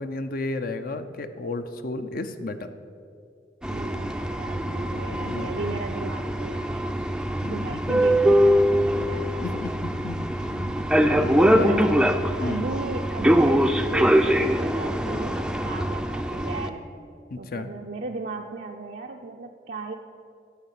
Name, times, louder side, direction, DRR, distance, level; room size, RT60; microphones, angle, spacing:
voice 1, 0.0-2.7 5.1-5.5 7.4-7.8 9.4-10.8 11.0-11.7 12.4-12.7 17.3-17.7, left 3 dB, 55° left, 9 dB, 0.6 m, -33 dB
sound 1, 3.6-16.7, equal, 5° right, 0.4 m, -23 dB
voice 2, 3.7-7.2 7.5-9.6 10.8-10.9 11.4-11.9 12.4-16.8 17.4-19.9, right 3 dB, 60° right, 1 dB, 0.5 m, -35 dB
12.5 x 5.7 x 8.3 m, 2.4 s
head